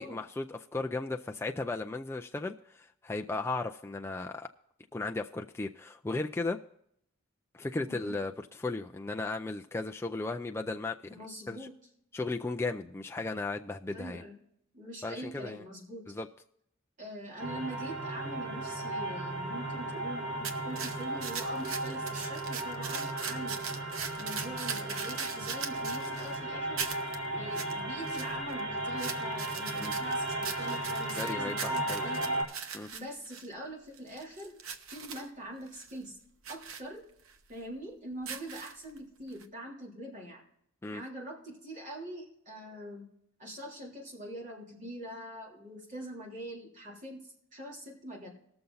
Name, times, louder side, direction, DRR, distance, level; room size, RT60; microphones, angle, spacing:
voice 1, 0.0-4.5 4.9-6.6 7.5-11.2 11.5-11.7 12.1-14.2 15.0-15.6 16.1-16.3 29.8-29.9 31.2-32.0 32.7-32.9 40.8-41.0, left 3 dB, 15° left, 3 dB, 0.4 m, -35 dB
voice 2, 7.8-8.2 11.1-11.7 13.9-14.4 14.7-16.1 17.0-23.6 24.2-26.9 27.3-32.4 32.9-34.6 34.9-36.2 36.5-37.0 37.5-40.4 40.9-43.1 43.4-48.3, equal, 40° right, -2 dB, 3.2 m, -43 dB
sound 1, 17.4-32.4, right 1 dB, 60° right, 2.9 m, -35 dB
sound 2, 20.4-26.4 26.8-27.2 27.5-27.7 28.0-28.6 29.0-33.5 33.9-35.3 35.7-35.9 36.4-36.8 37.3-37.4 38.1-39.0 39.4-39.5, right 6 dB, 85° right, 1.0 m, -40 dB
19.0 x 6.9 x 3.9 m, 0.72 s
head